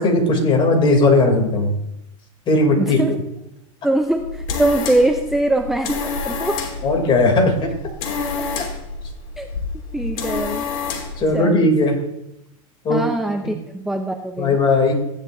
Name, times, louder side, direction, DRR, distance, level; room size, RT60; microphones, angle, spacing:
voice 1, 0.0-1.7 2.5-3.0 6.8-7.7 11.2-12.0 12.8-13.0 14.4-15.0, left 2 dB, 30° left, 2 dB, 2.9 m, -17 dB
voice 2, 2.8-3.2 3.8-6.6 9.4-9.5 9.9-10.6 11.3-11.7 12.9-14.6, right 1 dB, ahead, 5 dB, 0.5 m, -22 dB
sound 1, 4.1-11.3, left 4 dB, 70° left, 2.9 m, -28 dB
15.0 x 9.8 x 2.6 m, 0.85 s
supercardioid pair, 130°, 18 cm